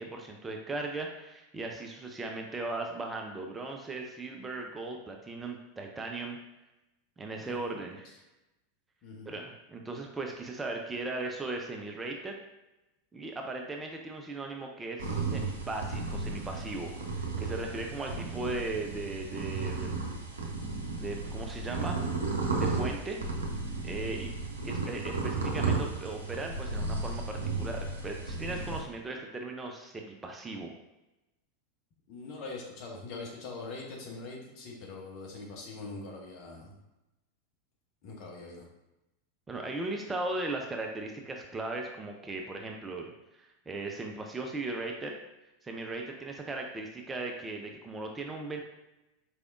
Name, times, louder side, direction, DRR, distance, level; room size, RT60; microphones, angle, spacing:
voice 1, 0.0-6.4 7.2-8.2 9.3-12.3 13.1-20.0 20.9-22.0 22.2-23.2 23.8-24.3 24.6-30.7 39.5-43.1 43.4-45.1 45.6-48.6, right 2 dB, 15° right, 2 dB, 0.4 m, -38 dB
voice 2, 7.4-7.8 9.0-9.3 24.5-24.7 32.1-36.7 38.0-38.6, left 3 dB, 45° left, -1 dB, 1.0 m, -43 dB
sound 1, 15.0-28.8, right 3 dB, 75° right, 0.6 m, -34 dB
4.5 x 3.4 x 2.5 m, 0.97 s
figure-of-eight pair, 85°, 0 cm